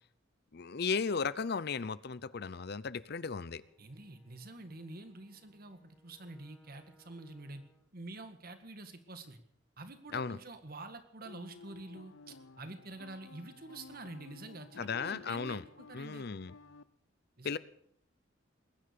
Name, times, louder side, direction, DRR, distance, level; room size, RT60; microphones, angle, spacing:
voice 1, 0.5-3.6 10.1-10.4 14.8-15.6 15.9-16.5 17.4-17.6, left 5 dB, 55° left, 17 dB, 0.6 m, -35 dB
Bowed string instrument, 3.2-8.0, equal, 10° left, 2.2 m, -68 dB
voice 2, 3.8-7.6 7.9-9.4 9.8-16.2 17.4-17.6, right 2 dB, 50° right, 9 dB, 1.8 m, -47 dB
sound 1, 11.2-16.8, left 3 dB, 90° left, 0.7 m, -55 dB
20.5 x 10.0 x 6.8 m, 0.68 s
head